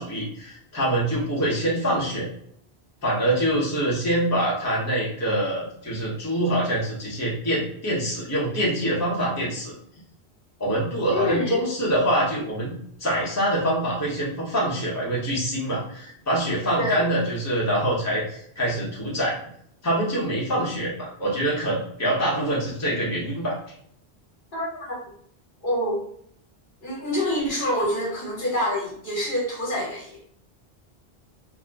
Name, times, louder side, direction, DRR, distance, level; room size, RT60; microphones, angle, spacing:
voice 1, 0.0-2.3 3.0-9.7 10.6-12.7 13.0-19.4 19.8-23.5, right 1 dB, 15° left, -6 dB, 0.8 m, -25 dB
voice 2, 11.1-11.6 16.8-17.0 24.5-24.8 25.6-26.0 26.8-30.2, left 1 dB, 50° left, -5 dB, 1.1 m, -26 dB
2.6 x 2.1 x 3.4 m, 0.66 s
omnidirectional pair, 1.1 m